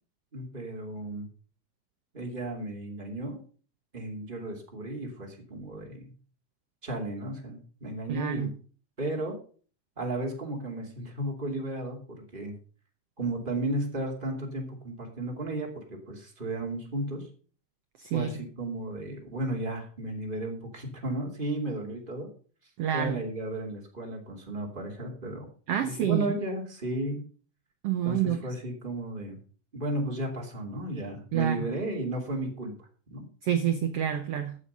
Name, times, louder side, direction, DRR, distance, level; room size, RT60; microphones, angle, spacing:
voice 1, 0.3-1.3 2.1-3.4 3.9-6.1 6.8-8.5 9.0-9.4 10.0-12.0 12.3-12.5 13.2-17.3 18.1-22.3 22.9-25.5 25.8-27.2 28.0-29.4 29.7-32.7 33.1-33.3, right 1 dB, 15° right, 0 dB, 2.4 m, -34 dB
voice 2, 8.1-8.5 18.0-18.3 22.8-23.2 25.7-26.4 27.8-28.4 31.3-31.7 33.4-34.6, right 9 dB, 80° right, 8 dB, 1.4 m, -28 dB
13.5 x 7.4 x 5.4 m, 0.42 s
omnidirectional pair, 3.9 m